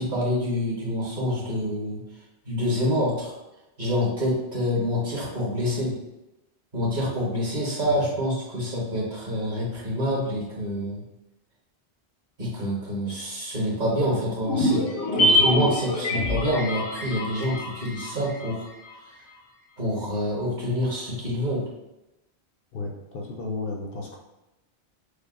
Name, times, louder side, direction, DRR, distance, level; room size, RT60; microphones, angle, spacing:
voice 1, 0.0-2.0 2.4-3.3 3.8-6.0 6.7-11.0 12.4-14.8 15.1-18.7 19.8-21.6, equal, 45° right, -6 dB, 1.3 m, -27 dB
sound 1, 14.4-18.9 19.2-19.3, left 1 dB, 90° left, 1.0 m, -25 dB
voice 2, 15.3-15.6 22.7-24.2, left 3 dB, 60° left, -1 dB, 0.8 m, -34 dB
6.3 x 2.1 x 2.4 m, 0.94 s
omnidirectional pair, 1.1 m